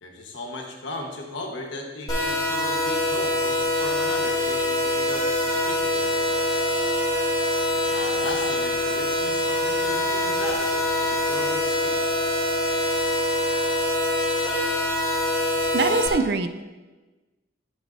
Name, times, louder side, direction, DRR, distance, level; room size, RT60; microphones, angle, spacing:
voice 1, 0.0-6.6 7.7-12.2, left 2 dB, 80° left, 1 dB, 1.2 m, -37 dB
sound 1, 2.1-16.1, left 1 dB, 20° left, 1.3 m, -24 dB
voice 2, 15.7-16.6, right 4 dB, 55° right, 9 dB, 0.4 m, -23 dB
11.0 x 6.3 x 2.7 m, 1.2 s
head